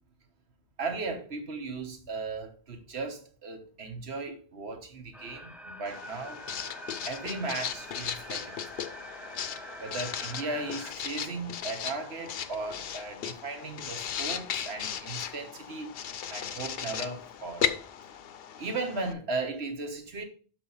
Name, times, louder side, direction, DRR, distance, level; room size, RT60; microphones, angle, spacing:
voice 1, 0.8-6.4 7.0-8.6 9.8-15.9 16.3-17.7 18.6-20.2, right 3 dB, 75° right, 1.5 m, -36 dB
sound 1, 5.1-10.9, right 1 dB, ahead, 0.4 m, -45 dB
Writing, 5.9-19.1, left 9 dB, 65° left, 0.8 m, -36 dB
6.3 x 5.2 x 5.5 m
omnidirectional pair, 1.1 m